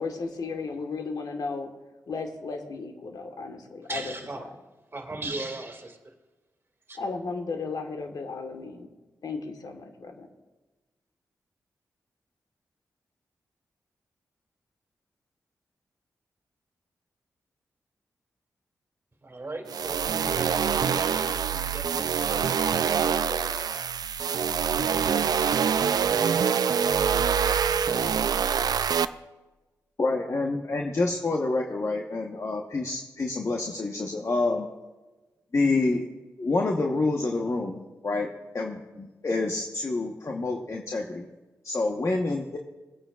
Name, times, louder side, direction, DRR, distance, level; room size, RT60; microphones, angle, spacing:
voice 1, 0.0-1.7 2.1-4.1 7.0-8.9 9.2-10.3, left 4 dB, 70° left, 5 dB, 1.4 m, -34 dB
voice 2, 3.9-4.5 4.9-6.1 6.9-7.0 19.2-22.6 22.9-23.8 24.9-26.1, right 2 dB, 35° right, 2 dB, 2.2 m, -39 dB
sound 1, 19.7-29.1, right 7 dB, 70° right, 0.4 m, -25 dB
sound 2, 26.0-28.1, right 5 dB, 85° right, 1.3 m, -29 dB
voice 3, 30.0-34.7 35.5-36.0 36.4-38.3 38.5-41.3 41.6-42.6, left 3 dB, 45° left, 1 dB, 1.1 m, -27 dB
20.0 x 8.8 x 2.4 m, 1.2 s
supercardioid pair, 40°, 7 cm